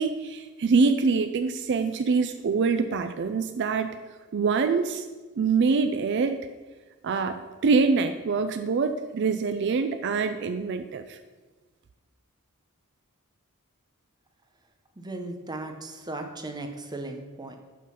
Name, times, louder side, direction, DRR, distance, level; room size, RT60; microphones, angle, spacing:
voice 1, 0.0-4.0 4.3-5.1 5.4-6.4 7.0-11.2, right 4 dB, 50° right, 8 dB, 0.4 m, -25 dB
voice 2, 15.0-17.6, right 2 dB, 20° right, 4 dB, 0.8 m, -37 dB
11.0 x 3.9 x 5.6 m, 1.3 s
head